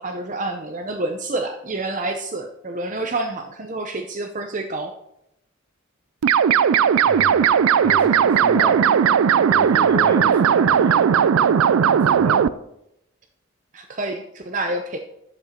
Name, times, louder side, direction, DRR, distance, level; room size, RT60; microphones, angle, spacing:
voice 1, 0.0-4.9 13.7-15.0, right 2 dB, 35° right, 5 dB, 0.6 m, -28 dB
sound 1, 6.2-12.5, right 8 dB, 80° right, 0.4 m, -17 dB
voice 2, 7.1-7.6 7.8-8.9 9.5-11.2 12.1-12.4, equal, 10° left, -3 dB, 2.6 m, -32 dB
10.5 x 7.3 x 4.3 m, 0.82 s
head